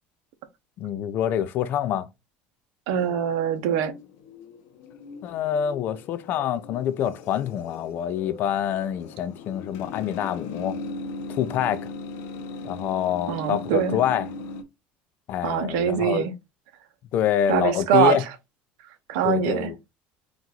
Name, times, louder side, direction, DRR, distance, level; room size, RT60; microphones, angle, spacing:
voice 1, 0.8-2.1 5.2-10.8 11.3-11.9 12.6-14.3 15.3-16.2 17.1-18.2 19.2-19.8, left 9 dB, 50° left, 0.6 m, -26 dB
voice 2, 2.9-3.9 13.3-14.0 15.4-16.3 17.5-18.2 19.1-19.7, right 9 dB, 80° right, 0.9 m, -23 dB
sound 1, 3.0-14.6, left 3 dB, 75° left, 1.0 m, -39 dB
4.5 x 2.6 x 3.9 m
cardioid pair, 130°, 4 cm